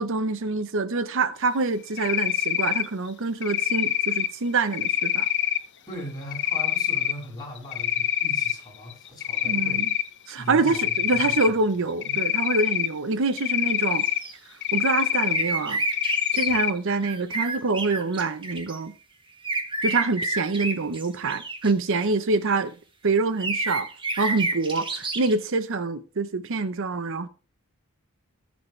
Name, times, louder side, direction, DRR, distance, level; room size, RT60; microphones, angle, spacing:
voice 1, 0.0-5.3 9.4-9.9 10.3-14.0 14.7-15.8 16.3-18.9 19.8-22.7 23.0-23.9 24.2-27.3, right 3 dB, 60° right, 0.7 m, -26 dB
Cricket, 2.0-2.9 3.4-4.3 4.7-5.6 6.3-7.1 7.6-8.5 8.9-10.1 10.7-11.5 12.0-12.9 13.4-14.2 14.6-15.4 15.9-16.7, left 10 dB, 55° left, 0.9 m, -25 dB
voice 2, 5.9-9.8 10.4-11.3 12.0-12.2, equal, 15° left, 6.5 m, -39 dB
sound 1, 14.0-14.3 15.3-16.5 17.0-18.8 19.4-22.1 23.4-25.3, right 2 dB, 25° right, 1.6 m, -29 dB
18.5 x 7.3 x 3.2 m
head